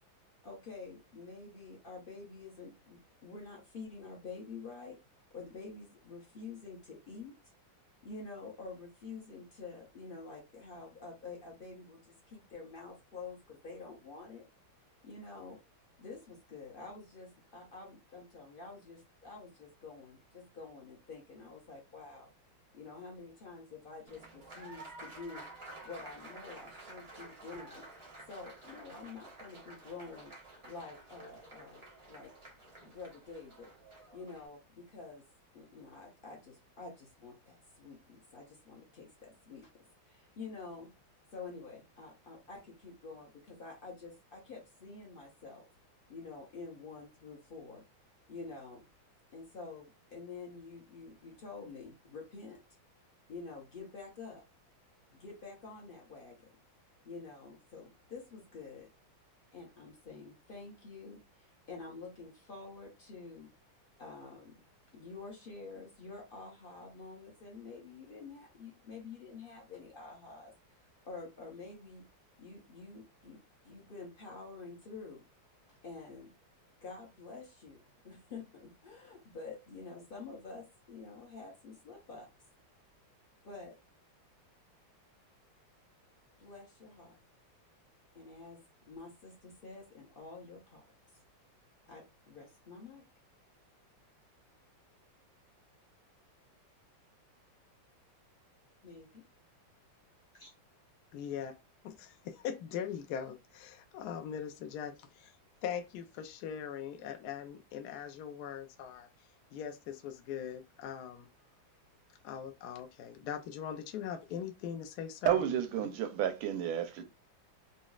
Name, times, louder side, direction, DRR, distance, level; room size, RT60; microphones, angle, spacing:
voice 1, 0.4-5.0 5.3-7.4 8.0-14.4 15.0-15.6 16.0-22.3 22.7-25.4 25.8-27.8 28.3-30.3 30.6-32.3 32.8-33.7 34.1-35.2 35.5-39.7 40.0-40.9 41.3-45.6 46.1-47.8 48.3-48.8 49.3-52.6 53.3-54.4 55.1-56.5 57.0-58.9 59.5-63.5 64.0-64.6 64.9-70.5 71.0-72.0 72.4-75.3 75.7-76.3 76.8-82.3 83.4-83.7 86.4-87.2 88.1-88.6 88.9-90.8 91.9-93.0 98.8-99.2 100.3-100.5, left 4 dB, 55° left, 0.5 m, -48 dB
Applause, 24.1-34.5, right 2 dB, 45° right, 0.4 m, -51 dB
voice 2, 101.1-101.5 101.8-105.4 105.6-109.1 109.5-111.3 112.2-115.6, left 8 dB, 70° left, 0.9 m, -41 dB
voice 3, 115.2-117.0, right 10 dB, 80° right, 1.4 m, -31 dB
4.0 x 2.0 x 2.3 m
omnidirectional pair, 2.1 m